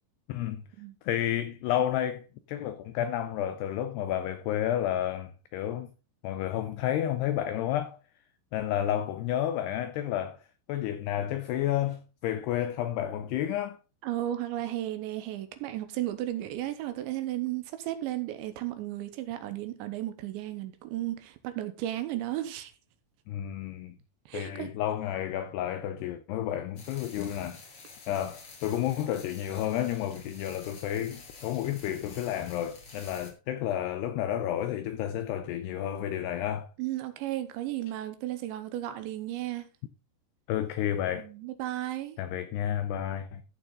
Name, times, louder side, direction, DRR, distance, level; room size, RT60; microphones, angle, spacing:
voice 1, 0.3-0.6 1.0-5.9 6.2-7.9 8.5-10.4 10.7-13.8 23.3-24.0 24.3-27.6 28.1-36.7 40.5-41.3 42.2-43.4, left 11 dB, 90° left, 2.3 m, -31 dB
voice 2, 14.0-22.7 24.3-24.7 36.8-39.7 41.1-42.2, right 14 dB, 80° right, 3.0 m, -34 dB
sound 1, 26.8-33.3, left 4 dB, 40° left, 2.1 m, -50 dB
15.0 x 7.0 x 3.9 m
omnidirectional pair, 5.6 m